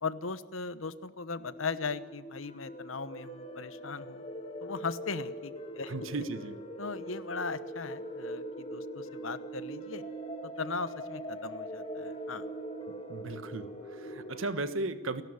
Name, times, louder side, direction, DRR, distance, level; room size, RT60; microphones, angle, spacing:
voice 1, 0.0-4.2 4.6-5.9 6.8-10.0 10.4-12.5, left 4 dB, 85° left, 14 dB, 1.1 m, -38 dB
sound 1, 1.4-14.5, right 1 dB, 30° left, 2.2 m, -42 dB
voice 2, 5.9-6.6 13.1-15.2, right 2 dB, 90° right, 11 dB, 1.4 m, -36 dB
29.5 x 12.0 x 9.7 m, 1.2 s
head